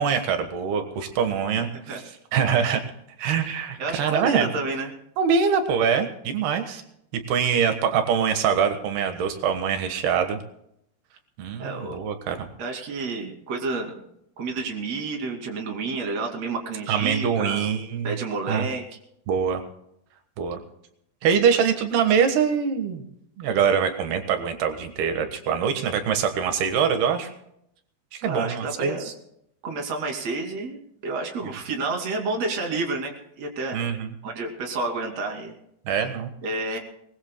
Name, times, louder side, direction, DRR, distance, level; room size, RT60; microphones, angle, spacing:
voice 1, 0.0-1.7 2.3-2.8 3.2-4.5 5.2-6.8 7.1-10.4 11.4-12.5 16.9-18.1 18.5-18.7 19.3-19.6 20.4-20.6 21.2-23.0 23.4-27.3 28.1-29.1 33.7-34.1 35.9-36.3, right 7 dB, 85° right, 7 dB, 3.4 m, -24 dB
voice 2, 1.6-2.0 2.6-2.8 3.8-4.9 11.6-12.0 12.6-14.0 14.4-17.7 18.0-18.8 28.2-29.1 29.6-33.8 34.2-35.6 36.0-36.1 36.4-36.8, right 3 dB, 45° right, 2 dB, 3.5 m, -30 dB
23.0 x 20.0 x 2.2 m, 0.74 s
omnidirectional pair, 4.4 m